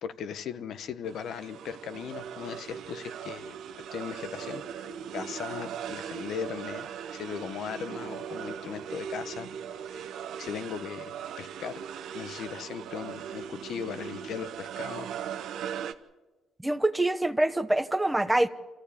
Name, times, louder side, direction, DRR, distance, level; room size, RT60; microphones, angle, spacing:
voice 1, 0.0-3.6 3.9-9.5 9.9-11.8 12.1-15.1, left 8 dB, 70° left, 11 dB, 1.1 m, -38 dB
sound 1, 1.0-15.9, right 8 dB, 80° right, 1.0 m, -39 dB
voice 2, 16.6-18.5, right 1 dB, 10° right, 12 dB, 0.9 m, -25 dB
25.0 x 14.5 x 8.5 m, 1.2 s
cardioid pair, 90°, 0 cm